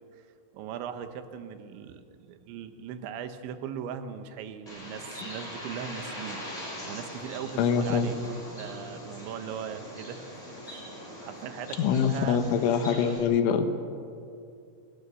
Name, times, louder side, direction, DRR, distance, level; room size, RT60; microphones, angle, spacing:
voice 1, 0.5-6.5 6.8-8.2 8.6-10.8 11.2-12.4 12.9-13.2, right 8 dB, 80° right, 9 dB, 3.5 m, -39 dB
Bird, 4.7-13.2, equal, 10° left, 6.0 m, -41 dB
voice 2, 7.6-8.1 11.8-13.7, left 7 dB, 85° left, 8 dB, 3.8 m, -24 dB
29.0 x 19.5 x 6.9 m, 2.4 s
omnidirectional pair, 5.4 m